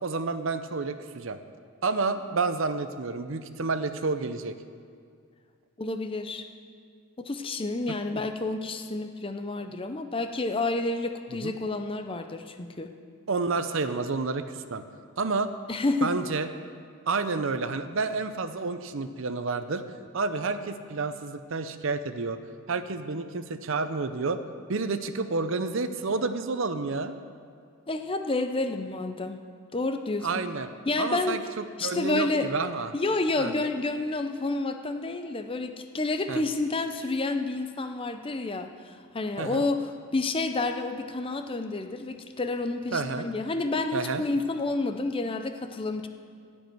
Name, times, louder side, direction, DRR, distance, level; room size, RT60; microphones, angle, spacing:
voice 1, 0.0-1.4 1.8-4.6 8.1-8.2 11.4-11.5 13.3-14.8 15.2-15.5 16.0-16.5 17.1-19.8 20.1-22.4 22.7-24.4 24.7-27.2 30.2-30.7 31.0-32.9 33.4-33.5 36.3-36.4 39.4-39.7 42.9-43.3 43.9-44.2, right 4 dB, 60° right, 10 dB, 0.6 m, -29 dB
voice 2, 5.8-6.5 7.2-12.9 15.7-16.1 27.9-29.4 29.7-30.4 30.9-31.4 31.8-32.5 32.9-46.1, left 2 dB, 25° left, 7 dB, 0.6 m, -29 dB
15.5 x 5.4 x 9.2 m, 2.2 s
head